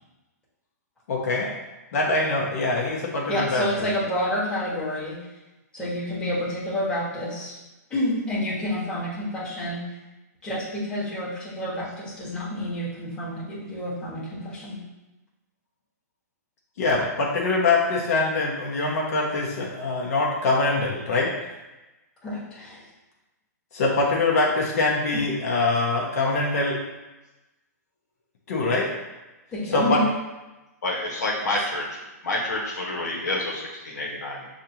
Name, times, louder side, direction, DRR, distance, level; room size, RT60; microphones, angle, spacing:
voice 1, 1.1-1.5 1.9-3.6 16.8-21.3 23.7-26.8 28.5-28.9 29.7-30.0, left 3 dB, 60° left, -3 dB, 1.0 m, -23 dB
voice 2, 3.3-5.2 5.7-7.5 7.9-9.8 10.4-14.8 22.2-22.8 29.5-30.1, left 1 dB, 10° left, -9 dB, 1.4 m, -29 dB
voice 3, 30.8-32.0 32.2-34.5, left 2 dB, 85° left, -2 dB, 1.2 m, -28 dB
6.4 x 2.5 x 2.8 m, 1.1 s
hypercardioid pair, 145°, 9 cm